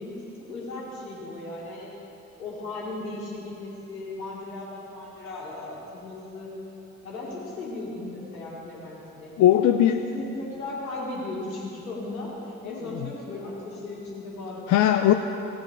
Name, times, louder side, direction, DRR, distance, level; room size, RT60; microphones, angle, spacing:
voice 1, 0.0-1.9 2.4-6.5 7.0-9.3 9.9-14.8, left 2 dB, 80° left, -5 dB, 2.0 m, -36 dB
voice 2, 9.4-10.0 12.6-13.1 14.7-15.1, left 11 dB, 45° left, 6 dB, 0.5 m, -20 dB
17.5 x 7.7 x 3.6 m, 3.0 s
figure-of-eight pair, 45°, 42 cm